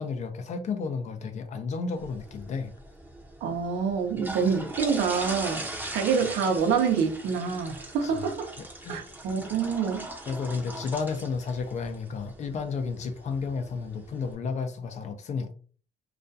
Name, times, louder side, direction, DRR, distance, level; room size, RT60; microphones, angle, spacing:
voice 1, 0.0-2.7 8.0-8.1 8.6-9.1 10.3-15.5, left 5 dB, 45° left, 0.5 m, -32 dB
sound 1, 2.0-14.3, right 1 dB, 10° right, 0.7 m, -40 dB
voice 2, 3.4-8.5 8.9-10.1, right 6 dB, 75° right, 0.7 m, -27 dB
2.4 x 2.2 x 2.6 m
cardioid pair, 110°, 17 cm